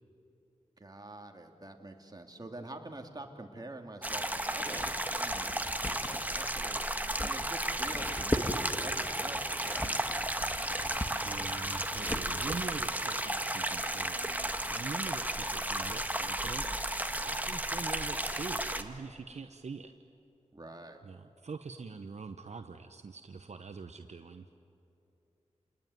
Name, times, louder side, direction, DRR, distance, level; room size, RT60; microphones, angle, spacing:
voice 1, 0.8-6.8 7.2-10.3 20.5-21.0, right 2 dB, 30° right, 3 dB, 2.6 m, -46 dB
sound 1, 4.0-18.8, right 1 dB, 15° right, 1.6 m, -34 dB
sound 2, 4.5-12.8, left 1 dB, 20° left, 1.9 m, -40 dB
voice 2, 11.2-19.9 21.0-24.4, right 4 dB, 65° right, 8 dB, 0.9 m, -44 dB
29.5 x 20.0 x 9.5 m, 2.8 s
wide cardioid pair, 60°, 13 cm